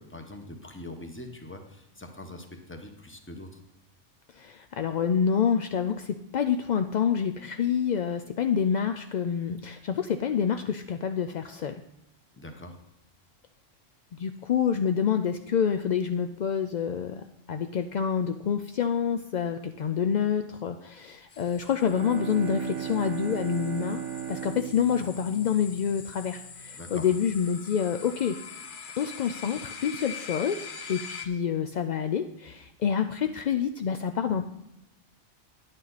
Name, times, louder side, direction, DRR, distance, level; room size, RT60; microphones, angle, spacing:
voice 1, 0.0-3.6 12.3-12.8 26.8-27.2, left 1 dB, 10° left, 4 dB, 0.9 m, -43 dB
voice 2, 4.3-11.8 14.2-24.0 24.3-28.4 29.0-34.5, left 7 dB, 70° left, 7 dB, 0.4 m, -27 dB
sound 1, 21.3-31.3, left 6 dB, 45° left, 0.9 m, -43 dB
Bowed string instrument, 21.7-26.4, right 9 dB, 75° right, 1.0 m, -36 dB
10.5 x 8.9 x 4.0 m, 0.83 s
omnidirectional pair, 1.3 m